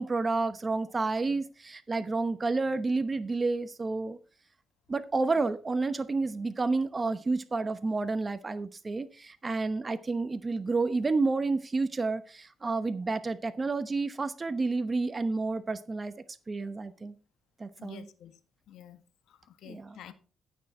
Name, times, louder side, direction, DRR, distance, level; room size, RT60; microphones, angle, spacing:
voice 1, 0.0-4.2 4.9-16.1 16.5-17.1 17.6-18.1 19.7-20.0, right 3 dB, 25° right, 0.9 m, -30 dB
voice 2, 17.8-18.3 18.7-19.0 19.3-20.1, left 10 dB, 80° left, 1.6 m, -49 dB
15.5 x 6.6 x 4.3 m
cardioid pair, 90°, 0 cm